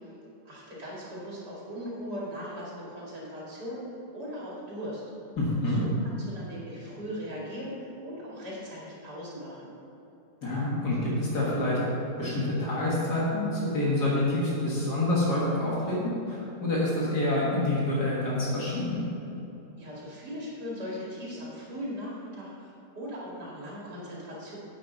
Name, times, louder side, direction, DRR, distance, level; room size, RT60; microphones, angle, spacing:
voice 1, 0.4-3.8 4.1-5.0 5.7-9.7 19.8-24.6, equal, 75° right, -6 dB, 3.1 m, -39 dB
voice 2, 5.4-5.8 10.4-11.8 12.2-16.0 16.3-19.0, left 1 dB, 75° left, -6 dB, 2.3 m, -27 dB
9.9 x 8.6 x 4.0 m, 2.9 s
omnidirectional pair, 1.8 m